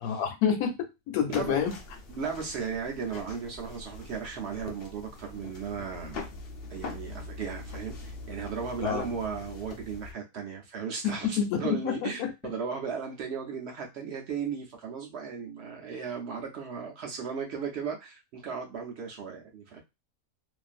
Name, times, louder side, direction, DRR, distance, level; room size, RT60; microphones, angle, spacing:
voice 1, 0.0-1.7 8.8-9.1 11.0-12.3, left 7 dB, 85° left, 5 dB, 1.1 m, -28 dB
sound 1, 1.3-10.1, left 3 dB, 60° left, 0.6 m, -43 dB
voice 2, 2.1-6.3 6.7-19.8, right 6 dB, 65° right, 1 dB, 0.7 m, -36 dB
2.5 x 2.4 x 2.4 m, 0.23 s
omnidirectional pair, 1.5 m